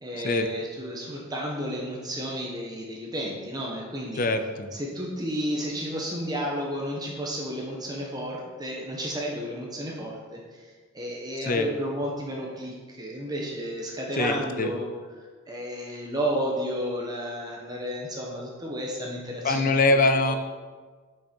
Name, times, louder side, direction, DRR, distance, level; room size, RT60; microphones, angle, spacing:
voice 1, 0.0-4.2 4.7-10.7 10.9-14.9 15.5-20.4, equal, 20° right, -2 dB, 1.1 m, -32 dB
voice 2, 4.2-4.7 11.5-11.7 14.2-14.7 19.4-20.3, left 2 dB, 40° left, 8 dB, 0.7 m, -23 dB
8.9 x 5.5 x 4.5 m, 1.4 s
head